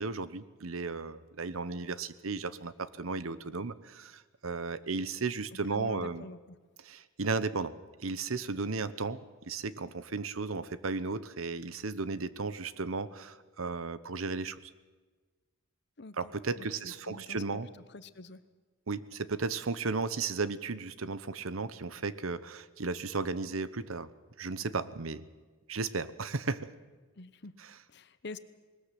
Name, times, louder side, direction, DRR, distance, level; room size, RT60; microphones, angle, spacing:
voice 1, 0.0-6.3 6.8-14.6 16.2-17.7 18.9-24.1 24.4-25.3 25.7-26.7 27.6-27.7, right 4 dB, 80° right, 15 dB, 1.0 m, -35 dB
voice 2, 5.7-6.6 16.0-16.2 16.6-17.6 17.9-18.4 27.2-27.6 27.9-28.4, left 3 dB, 55° left, 13 dB, 1.0 m, -46 dB
20.5 x 19.5 x 7.6 m, 1.3 s
head